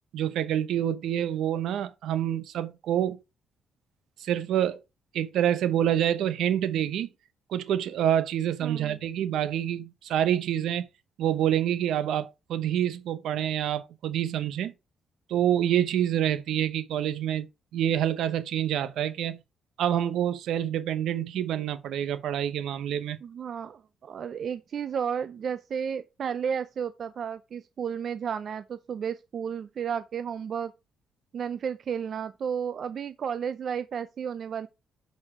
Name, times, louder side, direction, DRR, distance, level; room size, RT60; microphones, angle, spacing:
voice 1, 0.1-3.2 4.2-4.8 5.1-7.1 7.5-10.9 11.2-14.7 15.3-17.5 17.7-19.4 19.8-23.2, right 10 dB, 80° right, 0.9 m, -27 dB
voice 2, 8.6-9.0 23.2-30.7 31.3-34.7, right 7 dB, 55° right, 0.5 m, -32 dB
6.3 x 5.5 x 4.8 m
cardioid pair, 90°, 0 cm